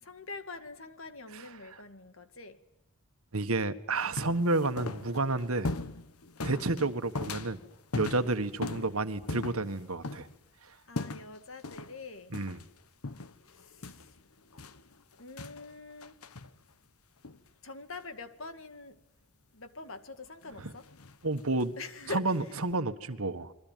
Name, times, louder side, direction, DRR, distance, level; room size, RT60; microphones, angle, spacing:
voice 1, 0.0-2.6 6.7-6.9 10.9-12.3 13.5-14.1 15.2-16.2 17.6-19.0 19.5-20.9 21.8-22.3, left 3 dB, 65° left, 2.1 m, -44 dB
voice 2, 1.3-1.8 3.3-5.7 6.4-7.6 7.9-10.3 12.3-12.6 20.6-20.7 21.2-21.8 22.1-23.5, right 2 dB, 75° right, 1.6 m, -31 dB
sound 1, 4.0-10.3 11.0-11.4 11.6-12.0 12.3-12.7 13.0-15.7 16.0-16.6 17.2-17.4 20.4-21.6 22.3-22.7, left 2 dB, 85° left, 1.2 m, -39 dB
28.5 x 22.5 x 9.2 m
head